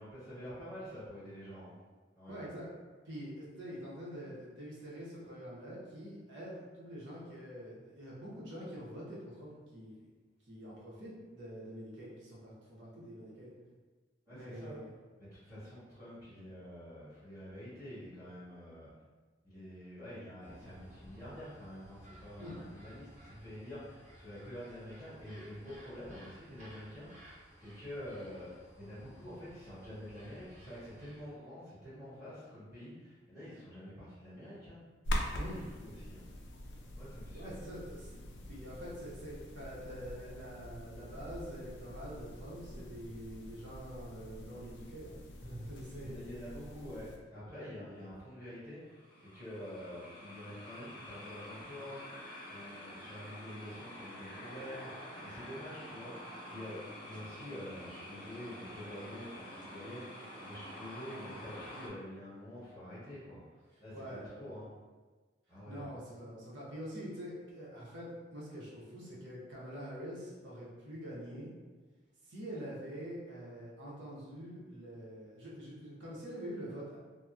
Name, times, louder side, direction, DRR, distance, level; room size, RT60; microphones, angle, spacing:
voice 1, 0.0-1.7 2.1-2.4 14.3-14.8 15.2-18.9 19.4-27.3 27.6-34.8 35.3-36.2 36.9-37.6 46.0-52.2 52.5-63.4 63.8-64.7 65.5-65.9, equal, 10° right, -15 dB, 1.3 m, -47 dB
voice 2, 2.3-2.7 3.0-9.9 10.4-13.5 14.3-14.9 22.4-22.6 35.3-35.6 37.3-38.1 38.5-46.1 63.9-64.5 65.5-71.5 72.2-77.0, equal, 80° right, -6 dB, 0.8 m, -45 dB
sound 1, 20.4-31.4, equal, 45° right, 0.8 m, -56 dB
sound 2, 35.0-47.2, equal, 75° left, 0.4 m, -44 dB
sound 3, 48.8-61.9, left 1 dB, 25° left, 0.6 m, -48 dB
2.8 x 2.0 x 2.3 m, 1.3 s
head